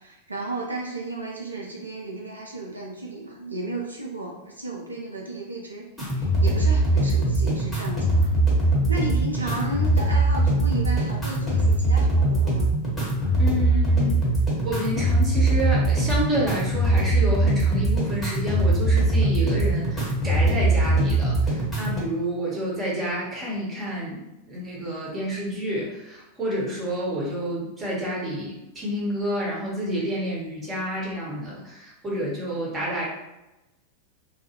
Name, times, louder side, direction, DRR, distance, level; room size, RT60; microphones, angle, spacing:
voice 1, 0.0-8.3 8.6-12.7, right 2 dB, 80° right, -1 dB, 0.4 m, -34 dB
sound 1, 6.0-22.0, right 2 dB, 10° left, 1.1 m, -22 dB
voice 2, 13.4-14.2 14.6-33.0, equal, 20° right, -4 dB, 1.0 m, -29 dB
2.3 x 2.2 x 2.9 m, 0.95 s
figure-of-eight pair, 90°, 0 cm